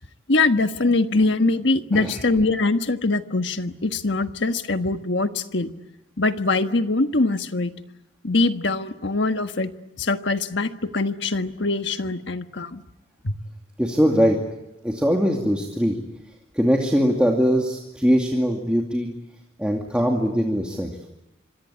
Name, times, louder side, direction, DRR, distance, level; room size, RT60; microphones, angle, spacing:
voice 1, 0.3-5.7 6.2-7.7 8.2-9.7 10.0-12.8 13.2-13.3, left 3 dB, 65° left, 8 dB, 1.5 m, -23 dB
voice 2, 1.9-2.3 13.8-14.4 14.8-16.0 16.5-19.1 19.6-20.9, equal, 5° right, 0 dB, 2.5 m, -21 dB
26.0 x 26.0 x 8.6 m, 0.89 s
head